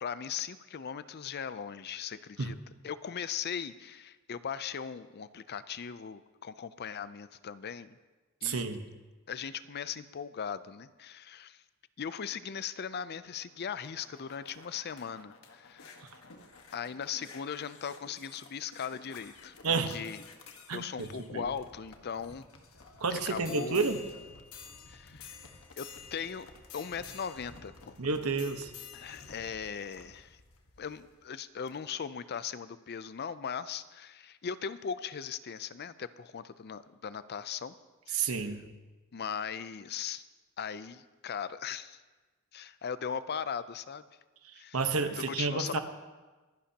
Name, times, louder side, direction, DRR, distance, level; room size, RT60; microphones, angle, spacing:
voice 1, 0.0-2.6 2.8-8.0 8.4-8.6 9.3-11.6 12.0-15.9 16.7-20.2 20.7-22.5 23.1-23.8 24.9-25.4 25.8-25.9 26.1-26.5 26.7-27.9 28.9-30.4 30.8-37.7 38.1-38.5 39.1-40.2 40.6-42.0 42.5-44.0 44.5-44.8 45.2-45.8, left 7 dB, 50° left, 14 dB, 0.5 m, -39 dB
voice 2, 8.4-8.8 19.6-20.0 20.7-21.4 23.0-24.0 28.0-28.7 38.1-38.6 44.7-45.8, right 4 dB, 80° right, 7 dB, 1.1 m, -30 dB
sound 1, 13.5-31.1 31.7-31.8, left 5 dB, 75° left, 1.4 m, -52 dB
25.0 x 11.0 x 2.9 m, 1.2 s
head